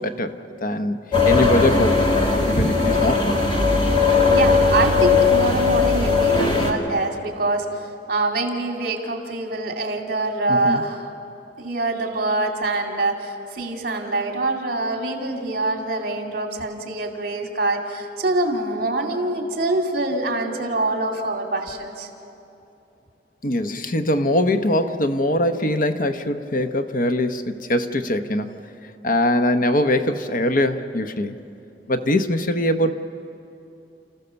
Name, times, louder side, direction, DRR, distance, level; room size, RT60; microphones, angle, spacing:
voice 1, 0.0-3.5 10.5-10.8 23.4-28.6 29.0-31.3 31.9-32.9, left 1 dB, 50° left, 8 dB, 0.9 m, -22 dB
sound 1, 1.1-6.7, left 4 dB, 30° left, 2.2 m, -18 dB
voice 2, 4.3-11.1 11.6-22.1, right 2 dB, 60° right, 3 dB, 2.5 m, -25 dB
29.5 x 15.0 x 6.9 m, 2.8 s
head